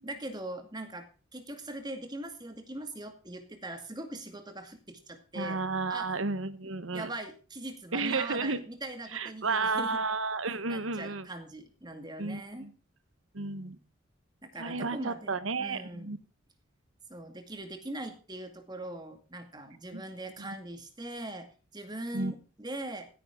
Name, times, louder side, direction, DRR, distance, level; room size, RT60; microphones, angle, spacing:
voice 1, 0.0-1.1 1.3-5.6 5.9-6.1 6.9-10.0 10.7-12.7 14.4-16.2 17.1-23.1, right 1 dB, 20° right, 7 dB, 2.1 m, -41 dB
voice 2, 5.3-7.1 7.9-8.6 9.1-11.3 12.2-12.7 13.3-13.8 14.6-16.2 19.9-20.0 20.4-20.5 22.1-22.3, right 3 dB, 85° right, 14 dB, 1.2 m, -32 dB
16.0 x 10.0 x 3.7 m, 0.37 s
head